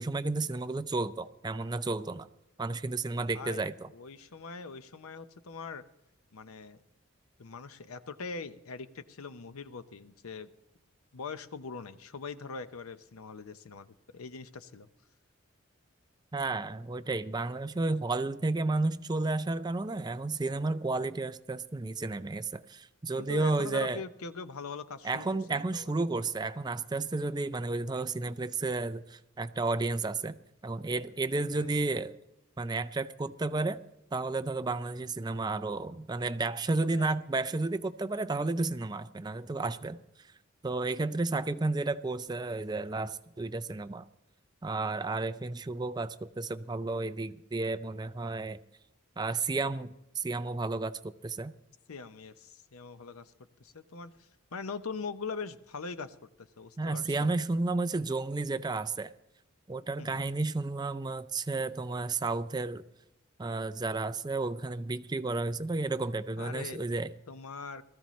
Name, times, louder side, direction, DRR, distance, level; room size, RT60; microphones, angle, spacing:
voice 1, 0.0-2.3 2.6-3.9 16.3-24.0 25.0-30.4 30.6-32.1 32.6-33.8 34.1-40.0 40.6-44.1 44.6-48.6 49.2-51.5 56.8-59.1 59.7-62.8 63.4-67.1, right 3 dB, 20° right, 0.4 m, -32 dB
voice 2, 3.3-5.8 6.3-6.8 7.4-10.5 11.1-14.9 23.2-25.9 31.6-31.7 36.8-37.1 51.9-53.3 53.6-57.3 60.0-60.2 66.4-66.9 67.3-67.8, left 4 dB, 90° left, 0.7 m, -42 dB
19.5 x 14.0 x 3.1 m
head